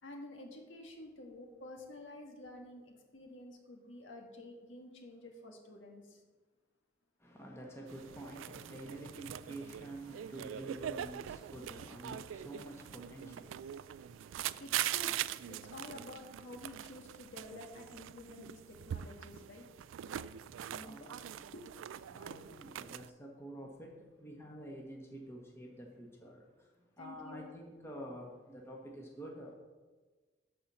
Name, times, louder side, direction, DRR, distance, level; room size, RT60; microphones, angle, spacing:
voice 1, 0.0-6.2 14.6-19.6 20.7-21.1 21.5-21.6 22.5-22.6 27.0-27.5, left 1 dB, 80° left, 1.6 m, -50 dB
voice 2, 7.2-14.6 18.7-19.4 20.1-21.5 22.1-29.5, right 1 dB, 15° left, 1.4 m, -49 dB
sound 1, 7.9-23.1, right 11 dB, 90° right, 0.3 m, -42 dB
11.0 x 4.3 x 6.9 m
head